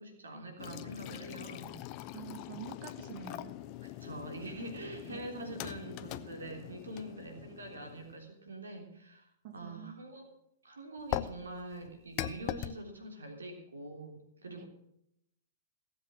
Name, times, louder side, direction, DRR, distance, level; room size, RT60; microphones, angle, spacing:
voice 1, 0.0-1.8 3.8-10.3 10.6-14.7, right 2 dB, 80° right, 3 dB, 3.3 m, -45 dB
sound 1, 0.6-8.3 11.1-12.7, left 14 dB, 40° left, 0.7 m, -42 dB
voice 2, 2.1-3.5 5.1-5.2 9.4-9.9 14.5-14.6, right 7 dB, 45° right, 7 dB, 2.2 m, -46 dB
17.5 x 7.8 x 7.5 m, 0.78 s
figure-of-eight pair, 110°, 0 cm